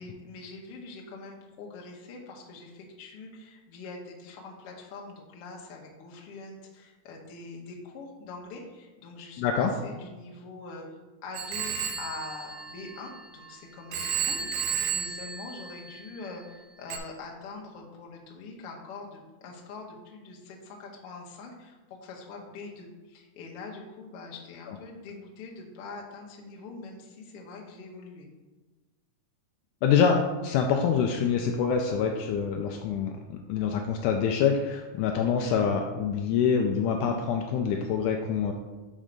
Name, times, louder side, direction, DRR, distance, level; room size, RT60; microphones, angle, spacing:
voice 1, 0.0-10.9 11.2-28.3, left 3 dB, 65° left, -1 dB, 1.5 m, -43 dB
voice 2, 9.4-9.7 24.7-24.8 29.8-38.5, left 6 dB, 80° left, 3 dB, 1.9 m, -26 dB
Telephone, 11.3-13.5 13.9-16.2 16.9-17.0, right 7 dB, 85° right, 1.4 m, -33 dB
6.2 x 4.3 x 5.1 m, 1.2 s
omnidirectional pair, 3.8 m